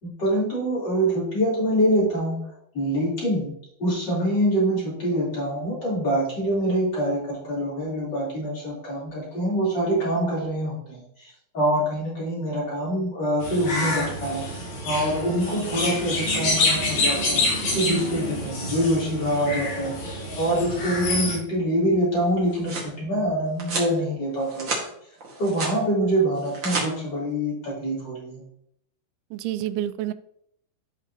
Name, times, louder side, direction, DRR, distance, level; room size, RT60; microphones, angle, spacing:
voice 1, 0.0-2.4 2.7-3.5 3.8-14.4 14.8-17.4 17.7-24.7 25.4-28.4, equal, 25° left, -7 dB, 3.9 m, -25 dB
sound 1, 13.4-21.4, left 2 dB, 50° left, 3.4 m, -27 dB
voice 2, 17.7-18.1 29.3-30.1, right 13 dB, 90° right, 13 dB, 2.9 m, -29 dB
sound 2, 22.2-22.9 23.6-23.9 24.4-24.8 25.2-25.8 26.4-26.9, right 3 dB, 60° right, 1.3 m, -30 dB
12.5 x 5.7 x 3.0 m, 0.72 s
omnidirectional pair, 5.2 m